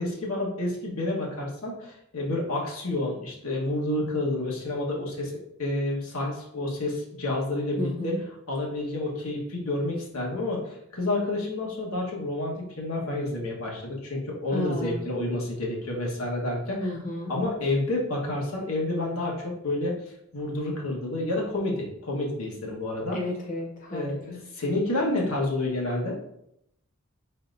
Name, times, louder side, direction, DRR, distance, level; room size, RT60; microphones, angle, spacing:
voice 1, 0.0-5.3 5.6-8.1 8.5-16.9 17.3-20.0 20.3-23.2 23.9-24.2 24.5-26.2, left 2 dB, 80° left, -2 dB, 1.3 m, -29 dB
voice 2, 7.8-8.2 14.5-15.1 16.8-17.3 23.1-24.4, left 1 dB, 35° left, -1 dB, 0.6 m, -33 dB
5.1 x 4.1 x 2.6 m, 0.76 s
head